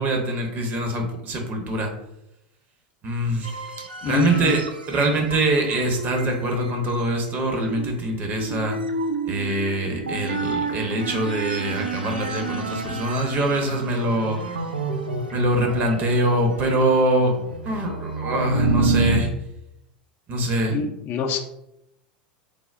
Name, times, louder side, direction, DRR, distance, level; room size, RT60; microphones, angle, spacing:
voice 1, 0.0-1.9 3.0-3.5 4.0-8.8 9.3-14.4 15.3-17.3 17.6-19.3 20.3-20.8, right 1 dB, 40° right, 3 dB, 0.7 m, -23 dB
sound 1, 3.4-19.2, right 4 dB, 90° right, 0.3 m, -29 dB
voice 2, 4.0-4.6 20.7-21.4, left 6 dB, 45° left, 5 dB, 0.4 m, -25 dB
3.4 x 2.0 x 2.4 m, 0.82 s
figure-of-eight pair, 85°, 5 cm